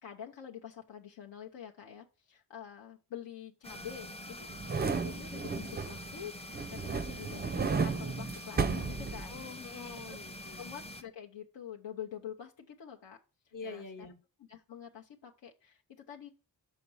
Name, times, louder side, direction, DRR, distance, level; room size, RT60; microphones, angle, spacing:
voice 1, 0.0-4.5 4.9-9.7 10.1-10.2 10.5-13.2 13.6-13.9 14.4-16.3, left 9 dB, 75° left, 1 dB, 0.9 m, -47 dB
sound 1, 3.6-11.0, left 1 dB, 15° left, 0.7 m, -46 dB
sound 2, 4.5-6.2 6.5-9.6 10.0-10.1, right 5 dB, 25° right, 0.4 m, -34 dB
voice 2, 9.3-10.6 13.5-14.2, left 4 dB, 45° left, 8 dB, 1.1 m, -45 dB
5.8 x 5.1 x 5.5 m, 0.35 s
wide cardioid pair, 95°, 44 cm